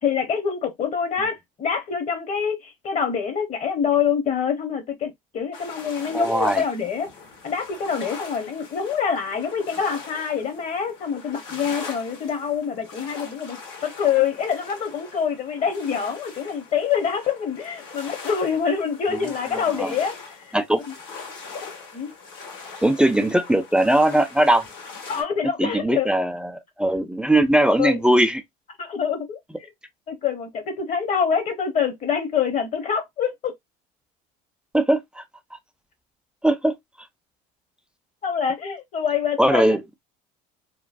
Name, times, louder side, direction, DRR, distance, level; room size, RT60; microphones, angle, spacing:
voice 1, 0.0-7.1 7.4-20.6 21.9-22.1 25.1-26.1 27.8-28.0 28.8-29.4 30.1-33.5 38.2-39.8, left 7 dB, 40° left, 1.0 m, -25 dB
sound 1, 5.5-25.2, left 4 dB, 70° left, 1.5 m, -41 dB
voice 2, 6.1-6.6 19.5-19.9 20.5-20.8 22.8-24.6 25.6-28.4 34.7-35.2 36.4-36.7 39.4-39.8, right 1 dB, 5° right, 0.3 m, -20 dB
3.0 x 2.2 x 2.5 m
supercardioid pair, 100°, 18 cm